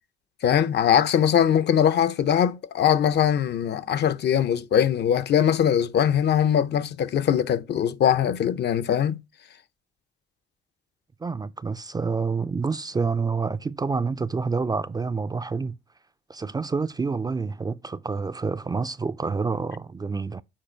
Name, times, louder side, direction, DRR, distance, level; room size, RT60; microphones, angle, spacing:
voice 1, 0.4-9.2, left 9 dB, 60° left, 0.6 m, -21 dB
voice 2, 11.2-15.8 16.3-20.4, right 4 dB, 20° right, 0.3 m, -28 dB
7.5 x 4.4 x 4.4 m
cardioid pair, 90°, 20 cm